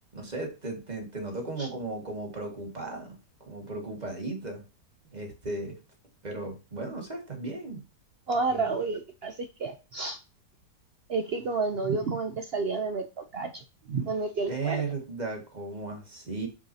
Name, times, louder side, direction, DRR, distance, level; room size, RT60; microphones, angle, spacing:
voice 1, 0.1-4.6 5.1-5.8 6.2-7.8 8.5-8.6 14.5-16.5, right 3 dB, 25° right, 2 dB, 1.9 m, -36 dB
voice 2, 8.3-10.2 11.1-14.8, right 4 dB, 70° right, 7 dB, 0.5 m, -30 dB
6.8 x 5.9 x 2.7 m, 0.30 s
omnidirectional pair, 1.8 m